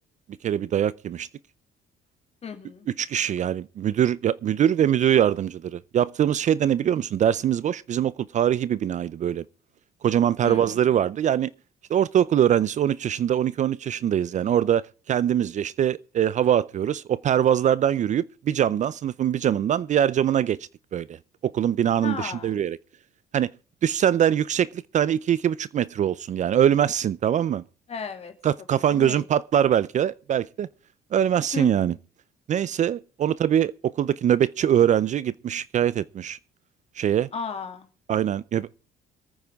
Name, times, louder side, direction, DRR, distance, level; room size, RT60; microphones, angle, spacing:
voice 1, 0.4-1.3 3.0-9.4 10.0-11.5 11.9-20.6 20.9-21.2 21.4-22.8 23.3-23.5 23.8-27.6 28.4-30.7 31.1-31.9 32.5-36.4 37.0-37.3 38.1-38.8, right 10 dB, 45° right, 0.5 m, -23 dB
voice 2, 2.4-2.9 10.4-10.8 22.0-22.6 27.9-28.3 28.9-29.2 31.5-31.9 37.3-37.9, left 6 dB, 40° left, 2.6 m, -34 dB
25.0 x 9.3 x 3.6 m
cardioid pair, 110°, 17 cm